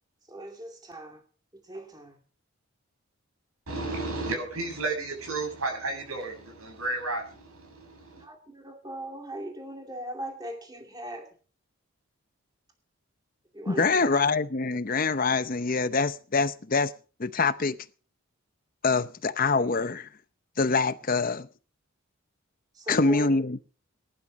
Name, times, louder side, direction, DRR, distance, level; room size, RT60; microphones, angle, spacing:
voice 1, 0.3-1.2 1.6-2.2 8.1-11.3 13.5-14.1 22.7-23.4, equal, 20° right, 2.5 m, -39 dB
voice 2, 3.7-8.2, right 2 dB, 75° right, 7.6 m, -33 dB
voice 3, 13.7-16.9 17.2-17.8 18.8-20.1 20.6-21.5 22.9-23.6, left 4 dB, 40° left, 0.7 m, -25 dB
18.5 x 12.0 x 5.3 m
head